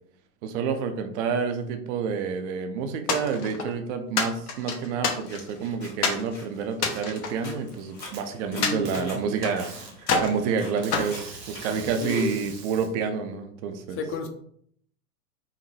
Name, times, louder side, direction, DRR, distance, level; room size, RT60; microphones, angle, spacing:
voice 1, 0.4-9.7 10.0-14.0, right 6 dB, 45° right, 0.6 m, -29 dB
sound 1, 3.1-3.7 4.2-5.6 6.0-6.3 6.7-8.1 8.6-9.6 10.0-10.4 10.9-12.0, left 5 dB, 65° left, 1.1 m, -28 dB
sound 2, 5.3-12.9, left 2 dB, 90° left, 1.7 m, -46 dB
Packing tape duct tape, 7.2-8.2 8.8-9.0 9.6-9.9 10.8-12.9, right 4 dB, 85° right, 1.3 m, -42 dB
voice 2, 8.6-9.2 12.0-12.4 14.0-14.3, left 4 dB, 25° left, 0.7 m, -32 dB
4.8 x 2.6 x 3.2 m
hypercardioid pair, 100°, 48 cm